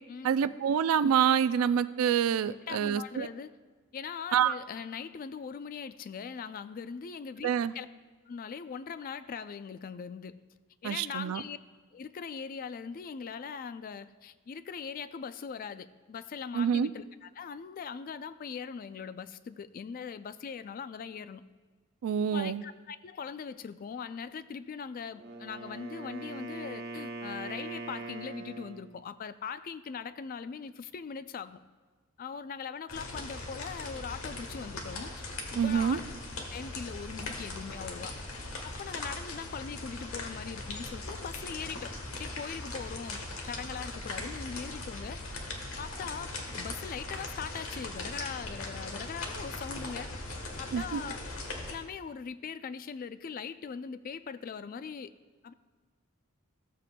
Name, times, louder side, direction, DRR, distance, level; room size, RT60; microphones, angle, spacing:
voice 1, 0.2-3.3 4.3-4.5 7.4-7.7 10.8-11.4 16.5-16.9 22.0-22.6 35.6-36.0 50.7-51.0, right 8 dB, 75° right, 14 dB, 0.3 m, -27 dB
voice 2, 2.7-3.5 3.9-7.9 8.3-10.4 10.8-11.6 11.9-21.4 22.3-31.6 32.2-35.2 35.5-36.1 36.5-38.1 38.6-45.2 45.8-51.2 51.7-55.1 55.4-55.5, left 6 dB, 40° left, 13 dB, 0.3 m, -41 dB
Wind instrument woodwind instrument, 25.1-28.9, right 2 dB, 45° right, 0.7 m, -41 dB
sound 1, 32.9-51.7, left 2 dB, 70° left, 1.3 m, -40 dB
14.5 x 7.4 x 2.2 m, 1.4 s
head